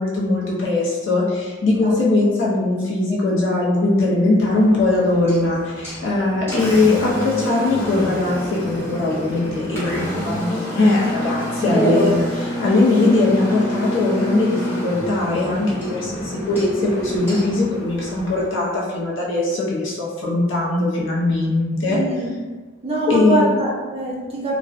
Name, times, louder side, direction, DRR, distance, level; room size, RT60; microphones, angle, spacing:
voice 1, 0.0-12.2 12.6-22.0 23.1-23.4, left 2 dB, 80° left, -5 dB, 0.6 m, -20 dB
Engine, 4.4-18.4, equal, 15° left, 0.8 m, -28 dB
voice 2, 11.6-12.1 21.9-22.3 22.8-24.6, right 2 dB, 30° right, -4 dB, 0.5 m, -23 dB
2.5 x 2.0 x 2.4 m, 1.4 s
head